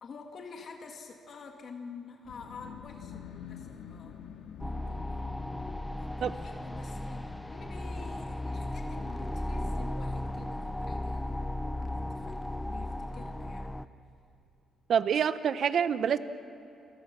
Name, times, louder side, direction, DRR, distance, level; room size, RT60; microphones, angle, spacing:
voice 1, 0.0-4.2 4.6-5.4 6.0-13.7, left 5 dB, 55° left, 2 dB, 2.1 m, -48 dB
sound 1, 2.2-13.6, left 7 dB, 85° left, 2.2 m, -49 dB
sound 2, 4.6-13.8, left 1 dB, 5° left, 0.7 m, -36 dB
voice 2, 14.9-16.2, right 8 dB, 60° right, 12 dB, 0.9 m, -26 dB
30.0 x 22.5 x 6.2 m, 2.9 s
cardioid pair, 120°, 0 cm